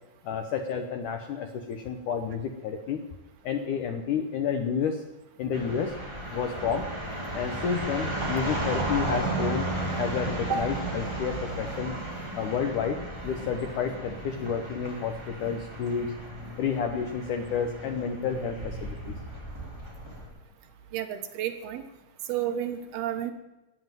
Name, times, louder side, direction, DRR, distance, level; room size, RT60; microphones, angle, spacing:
voice 1, 0.2-3.0 3.4-5.0 5.4-5.9 6.3-6.9 7.3-9.7 10.0-11.9 12.3-13.0 13.2-16.1 16.6-19.2, left 6 dB, 70° left, 6 dB, 2.0 m, -30 dB
sound 1, 5.5-20.3, right 1 dB, 5° right, 4.1 m, -34 dB
voice 2, 20.9-21.8 22.3-23.3, right 9 dB, 70° right, 6 dB, 3.1 m, -31 dB
14.0 x 9.9 x 9.1 m, 1.0 s
omnidirectional pair, 4.8 m